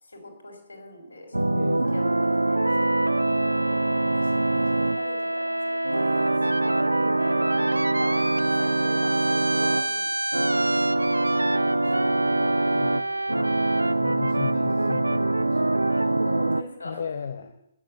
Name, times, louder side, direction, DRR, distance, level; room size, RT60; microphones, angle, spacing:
voice 1, 0.0-3.2 3.5-6.8 7.2-7.4 8.0-8.2 8.6-12.3 14.7-14.8 16.2-17.0, left 1 dB, 70° left, 4 dB, 3.6 m, -43 dB
sound 1, 1.3-16.6, right 2 dB, 85° right, 0.4 m, -23 dB
voice 2, 12.2-13.0 13.3-13.6 13.9-16.1 16.8-17.6, left 7 dB, 55° left, 8 dB, 0.7 m, -36 dB
9.6 x 7.4 x 8.6 m, 0.83 s
figure-of-eight pair, 130°, 0 cm